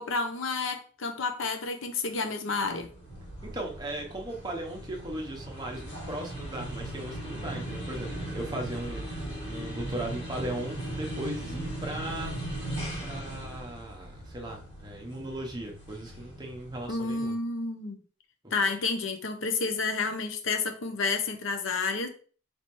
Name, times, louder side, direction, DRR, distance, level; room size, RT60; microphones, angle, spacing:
voice 1, 0.0-2.9 16.9-18.0 18.5-22.1, left 4 dB, 85° left, 0.7 m, -30 dB
sound 1, 2.6-17.1, right 1 dB, 60° left, 2.1 m, -38 dB
voice 2, 3.4-12.4 13.0-17.4, right 1 dB, 20° right, 0.7 m, -37 dB
4.2 x 3.3 x 3.0 m
head